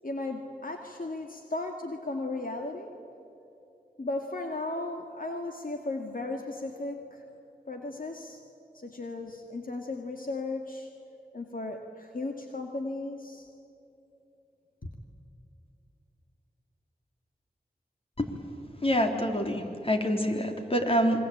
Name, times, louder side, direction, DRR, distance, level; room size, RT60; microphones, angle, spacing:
voice 1, 0.0-3.0 4.0-7.3 7.7-8.4 8.7-10.9 11.3-13.5 14.8-14.9, left 2 dB, 60° left, 3 dB, 2.1 m, -36 dB
voice 2, 18.8-21.2, equal, 35° left, 4 dB, 3.6 m, -26 dB
27.0 x 23.0 x 8.7 m, 2.9 s
cardioid pair, 45°, 16 cm